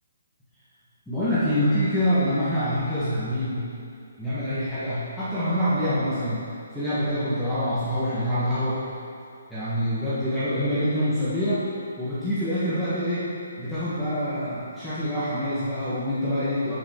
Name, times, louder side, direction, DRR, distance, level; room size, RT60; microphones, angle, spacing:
voice 1, 1.1-3.6 4.2-6.4 6.7-8.8 9.5-11.6 12.0-16.8, equal, 5° left, -15 dB, 1.2 m, -26 dB
9.5 x 7.1 x 3.6 m, 2.5 s
hypercardioid pair, 170°, 0 cm